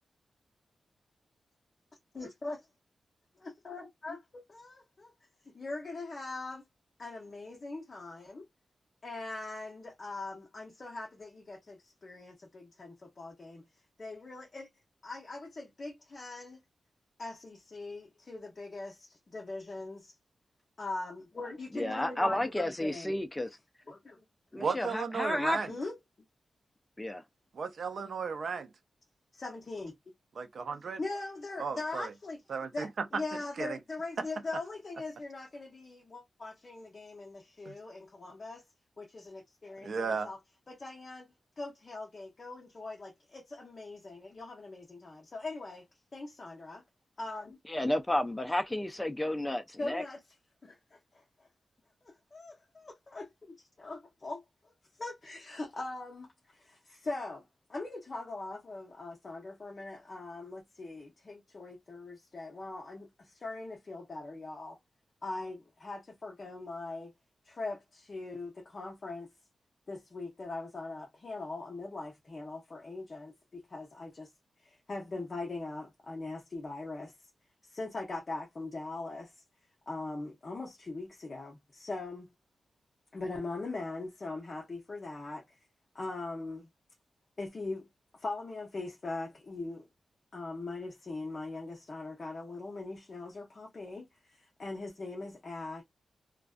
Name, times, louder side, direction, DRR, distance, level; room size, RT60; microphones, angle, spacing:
voice 1, 2.2-2.6 3.4-4.8 5.6-6.6 7.0-8.5 9.0-13.6 14.0-14.7 15.0-16.6 17.2-20.1 20.8-23.1 23.9-24.2 24.6-24.7 25.7-26.0 29.3-29.9 31.0-32.4 32.7-38.6 39.0-40.4 40.7-41.3 41.6-45.8 46.1-46.8 47.2-47.6 49.8-50.2 50.6-51.5 52.0-54.4 55.0-57.4 57.7-64.8 65.2-67.1 67.4-69.3 69.9-74.3 74.6-77.1 77.6-79.3 79.9-82.3 83.1-85.6 85.9-86.7 87.4-87.9 88.1-89.9 90.3-95.8, left 2 dB, 35° left, 0.7 m, -41 dB
voice 2, 21.7-23.5 24.5-25.7 27.0-27.2 47.7-50.0, left 1 dB, 10° left, 0.3 m, -31 dB
voice 3, 24.6-25.7 27.5-28.7 30.4-31.0 31.6-32.1 32.5-33.1 33.6-33.8 34.2-34.3 37.7-37.8 39.8-40.3, right 5 dB, 60° right, 0.4 m, -34 dB
2.4 x 2.2 x 2.4 m
wide cardioid pair, 170°, 0 cm